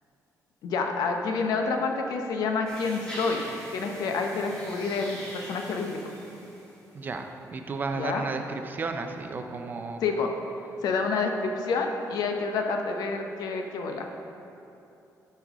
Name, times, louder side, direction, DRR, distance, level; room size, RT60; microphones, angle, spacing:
voice 1, 0.6-3.4 3.7-6.0 7.9-8.2 10.0-10.3 10.8-14.1, left 4 dB, 85° left, 3 dB, 0.9 m, -28 dB
sound 1, 2.7-7.0, equal, 10° left, 2.1 m, -42 dB
voice 2, 6.9-10.0, right 4 dB, 30° right, 5 dB, 0.5 m, -33 dB
13.5 x 5.5 x 3.7 m, 2.8 s
cardioid pair, 170°, 6 cm